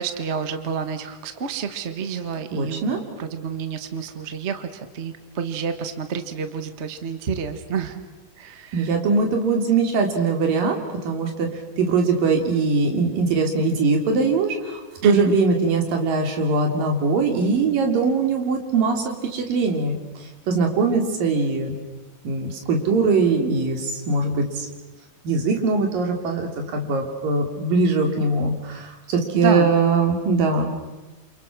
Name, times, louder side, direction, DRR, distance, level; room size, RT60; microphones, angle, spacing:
voice 1, 0.0-2.8 3.2-8.0 8.4-8.9 15.0-15.3 29.3-29.7, right 6 dB, 50° right, 9 dB, 0.7 m, -29 dB
voice 2, 2.5-3.0 8.7-11.5 11.8-20.0 20.5-21.7 22.2-24.7 25.2-30.7, right 4 dB, 85° right, 3 dB, 4.7 m, -21 dB
29.5 x 27.5 x 6.2 m, 1.1 s
omnidirectional pair, 3.8 m